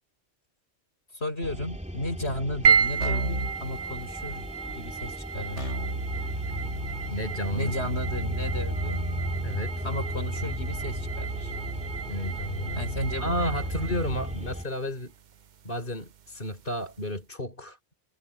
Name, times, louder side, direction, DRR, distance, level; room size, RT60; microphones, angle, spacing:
voice 1, 1.1-5.7 7.5-9.1 9.8-11.5 12.8-13.6, left 1 dB, 65° left, 7.6 m, -34 dB
sound 1, 1.4-14.6, equal, 5° right, 2.9 m, -36 dB
sound 2, 2.6-17.1, right 6 dB, 50° right, 0.7 m, -33 dB
Keyboard (musical), 3.0-3.6 5.6-14.4, right 1 dB, 90° right, 6.6 m, -35 dB
voice 2, 7.1-7.9 9.4-9.8 12.1-12.9 13.2-15.1 15.6-17.8, equal, 45° left, 5.1 m, -32 dB
omnidirectional pair, 1.2 m